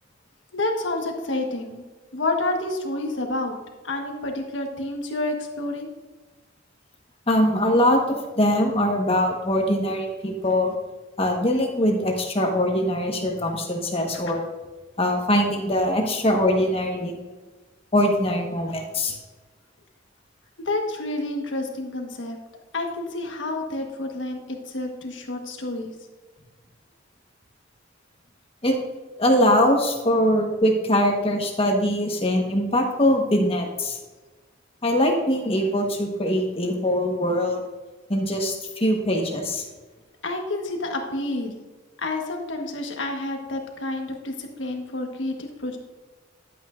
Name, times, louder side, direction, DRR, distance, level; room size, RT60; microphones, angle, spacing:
voice 1, 0.5-1.8 2.1-3.6 3.8-5.9 20.6-22.4 22.7-24.4 24.6-25.9 40.2-41.6 42.0-45.8, left 2 dB, 70° left, 3 dB, 1.4 m, -29 dB
voice 2, 7.3-10.7 11.2-14.5 15.0-17.2 17.9-19.1 28.6-28.7 29.2-34.0 34.8-37.6 38.1-39.6, left 1 dB, 30° left, 2 dB, 1.3 m, -22 dB
11.5 x 8.5 x 2.6 m, 1.3 s
head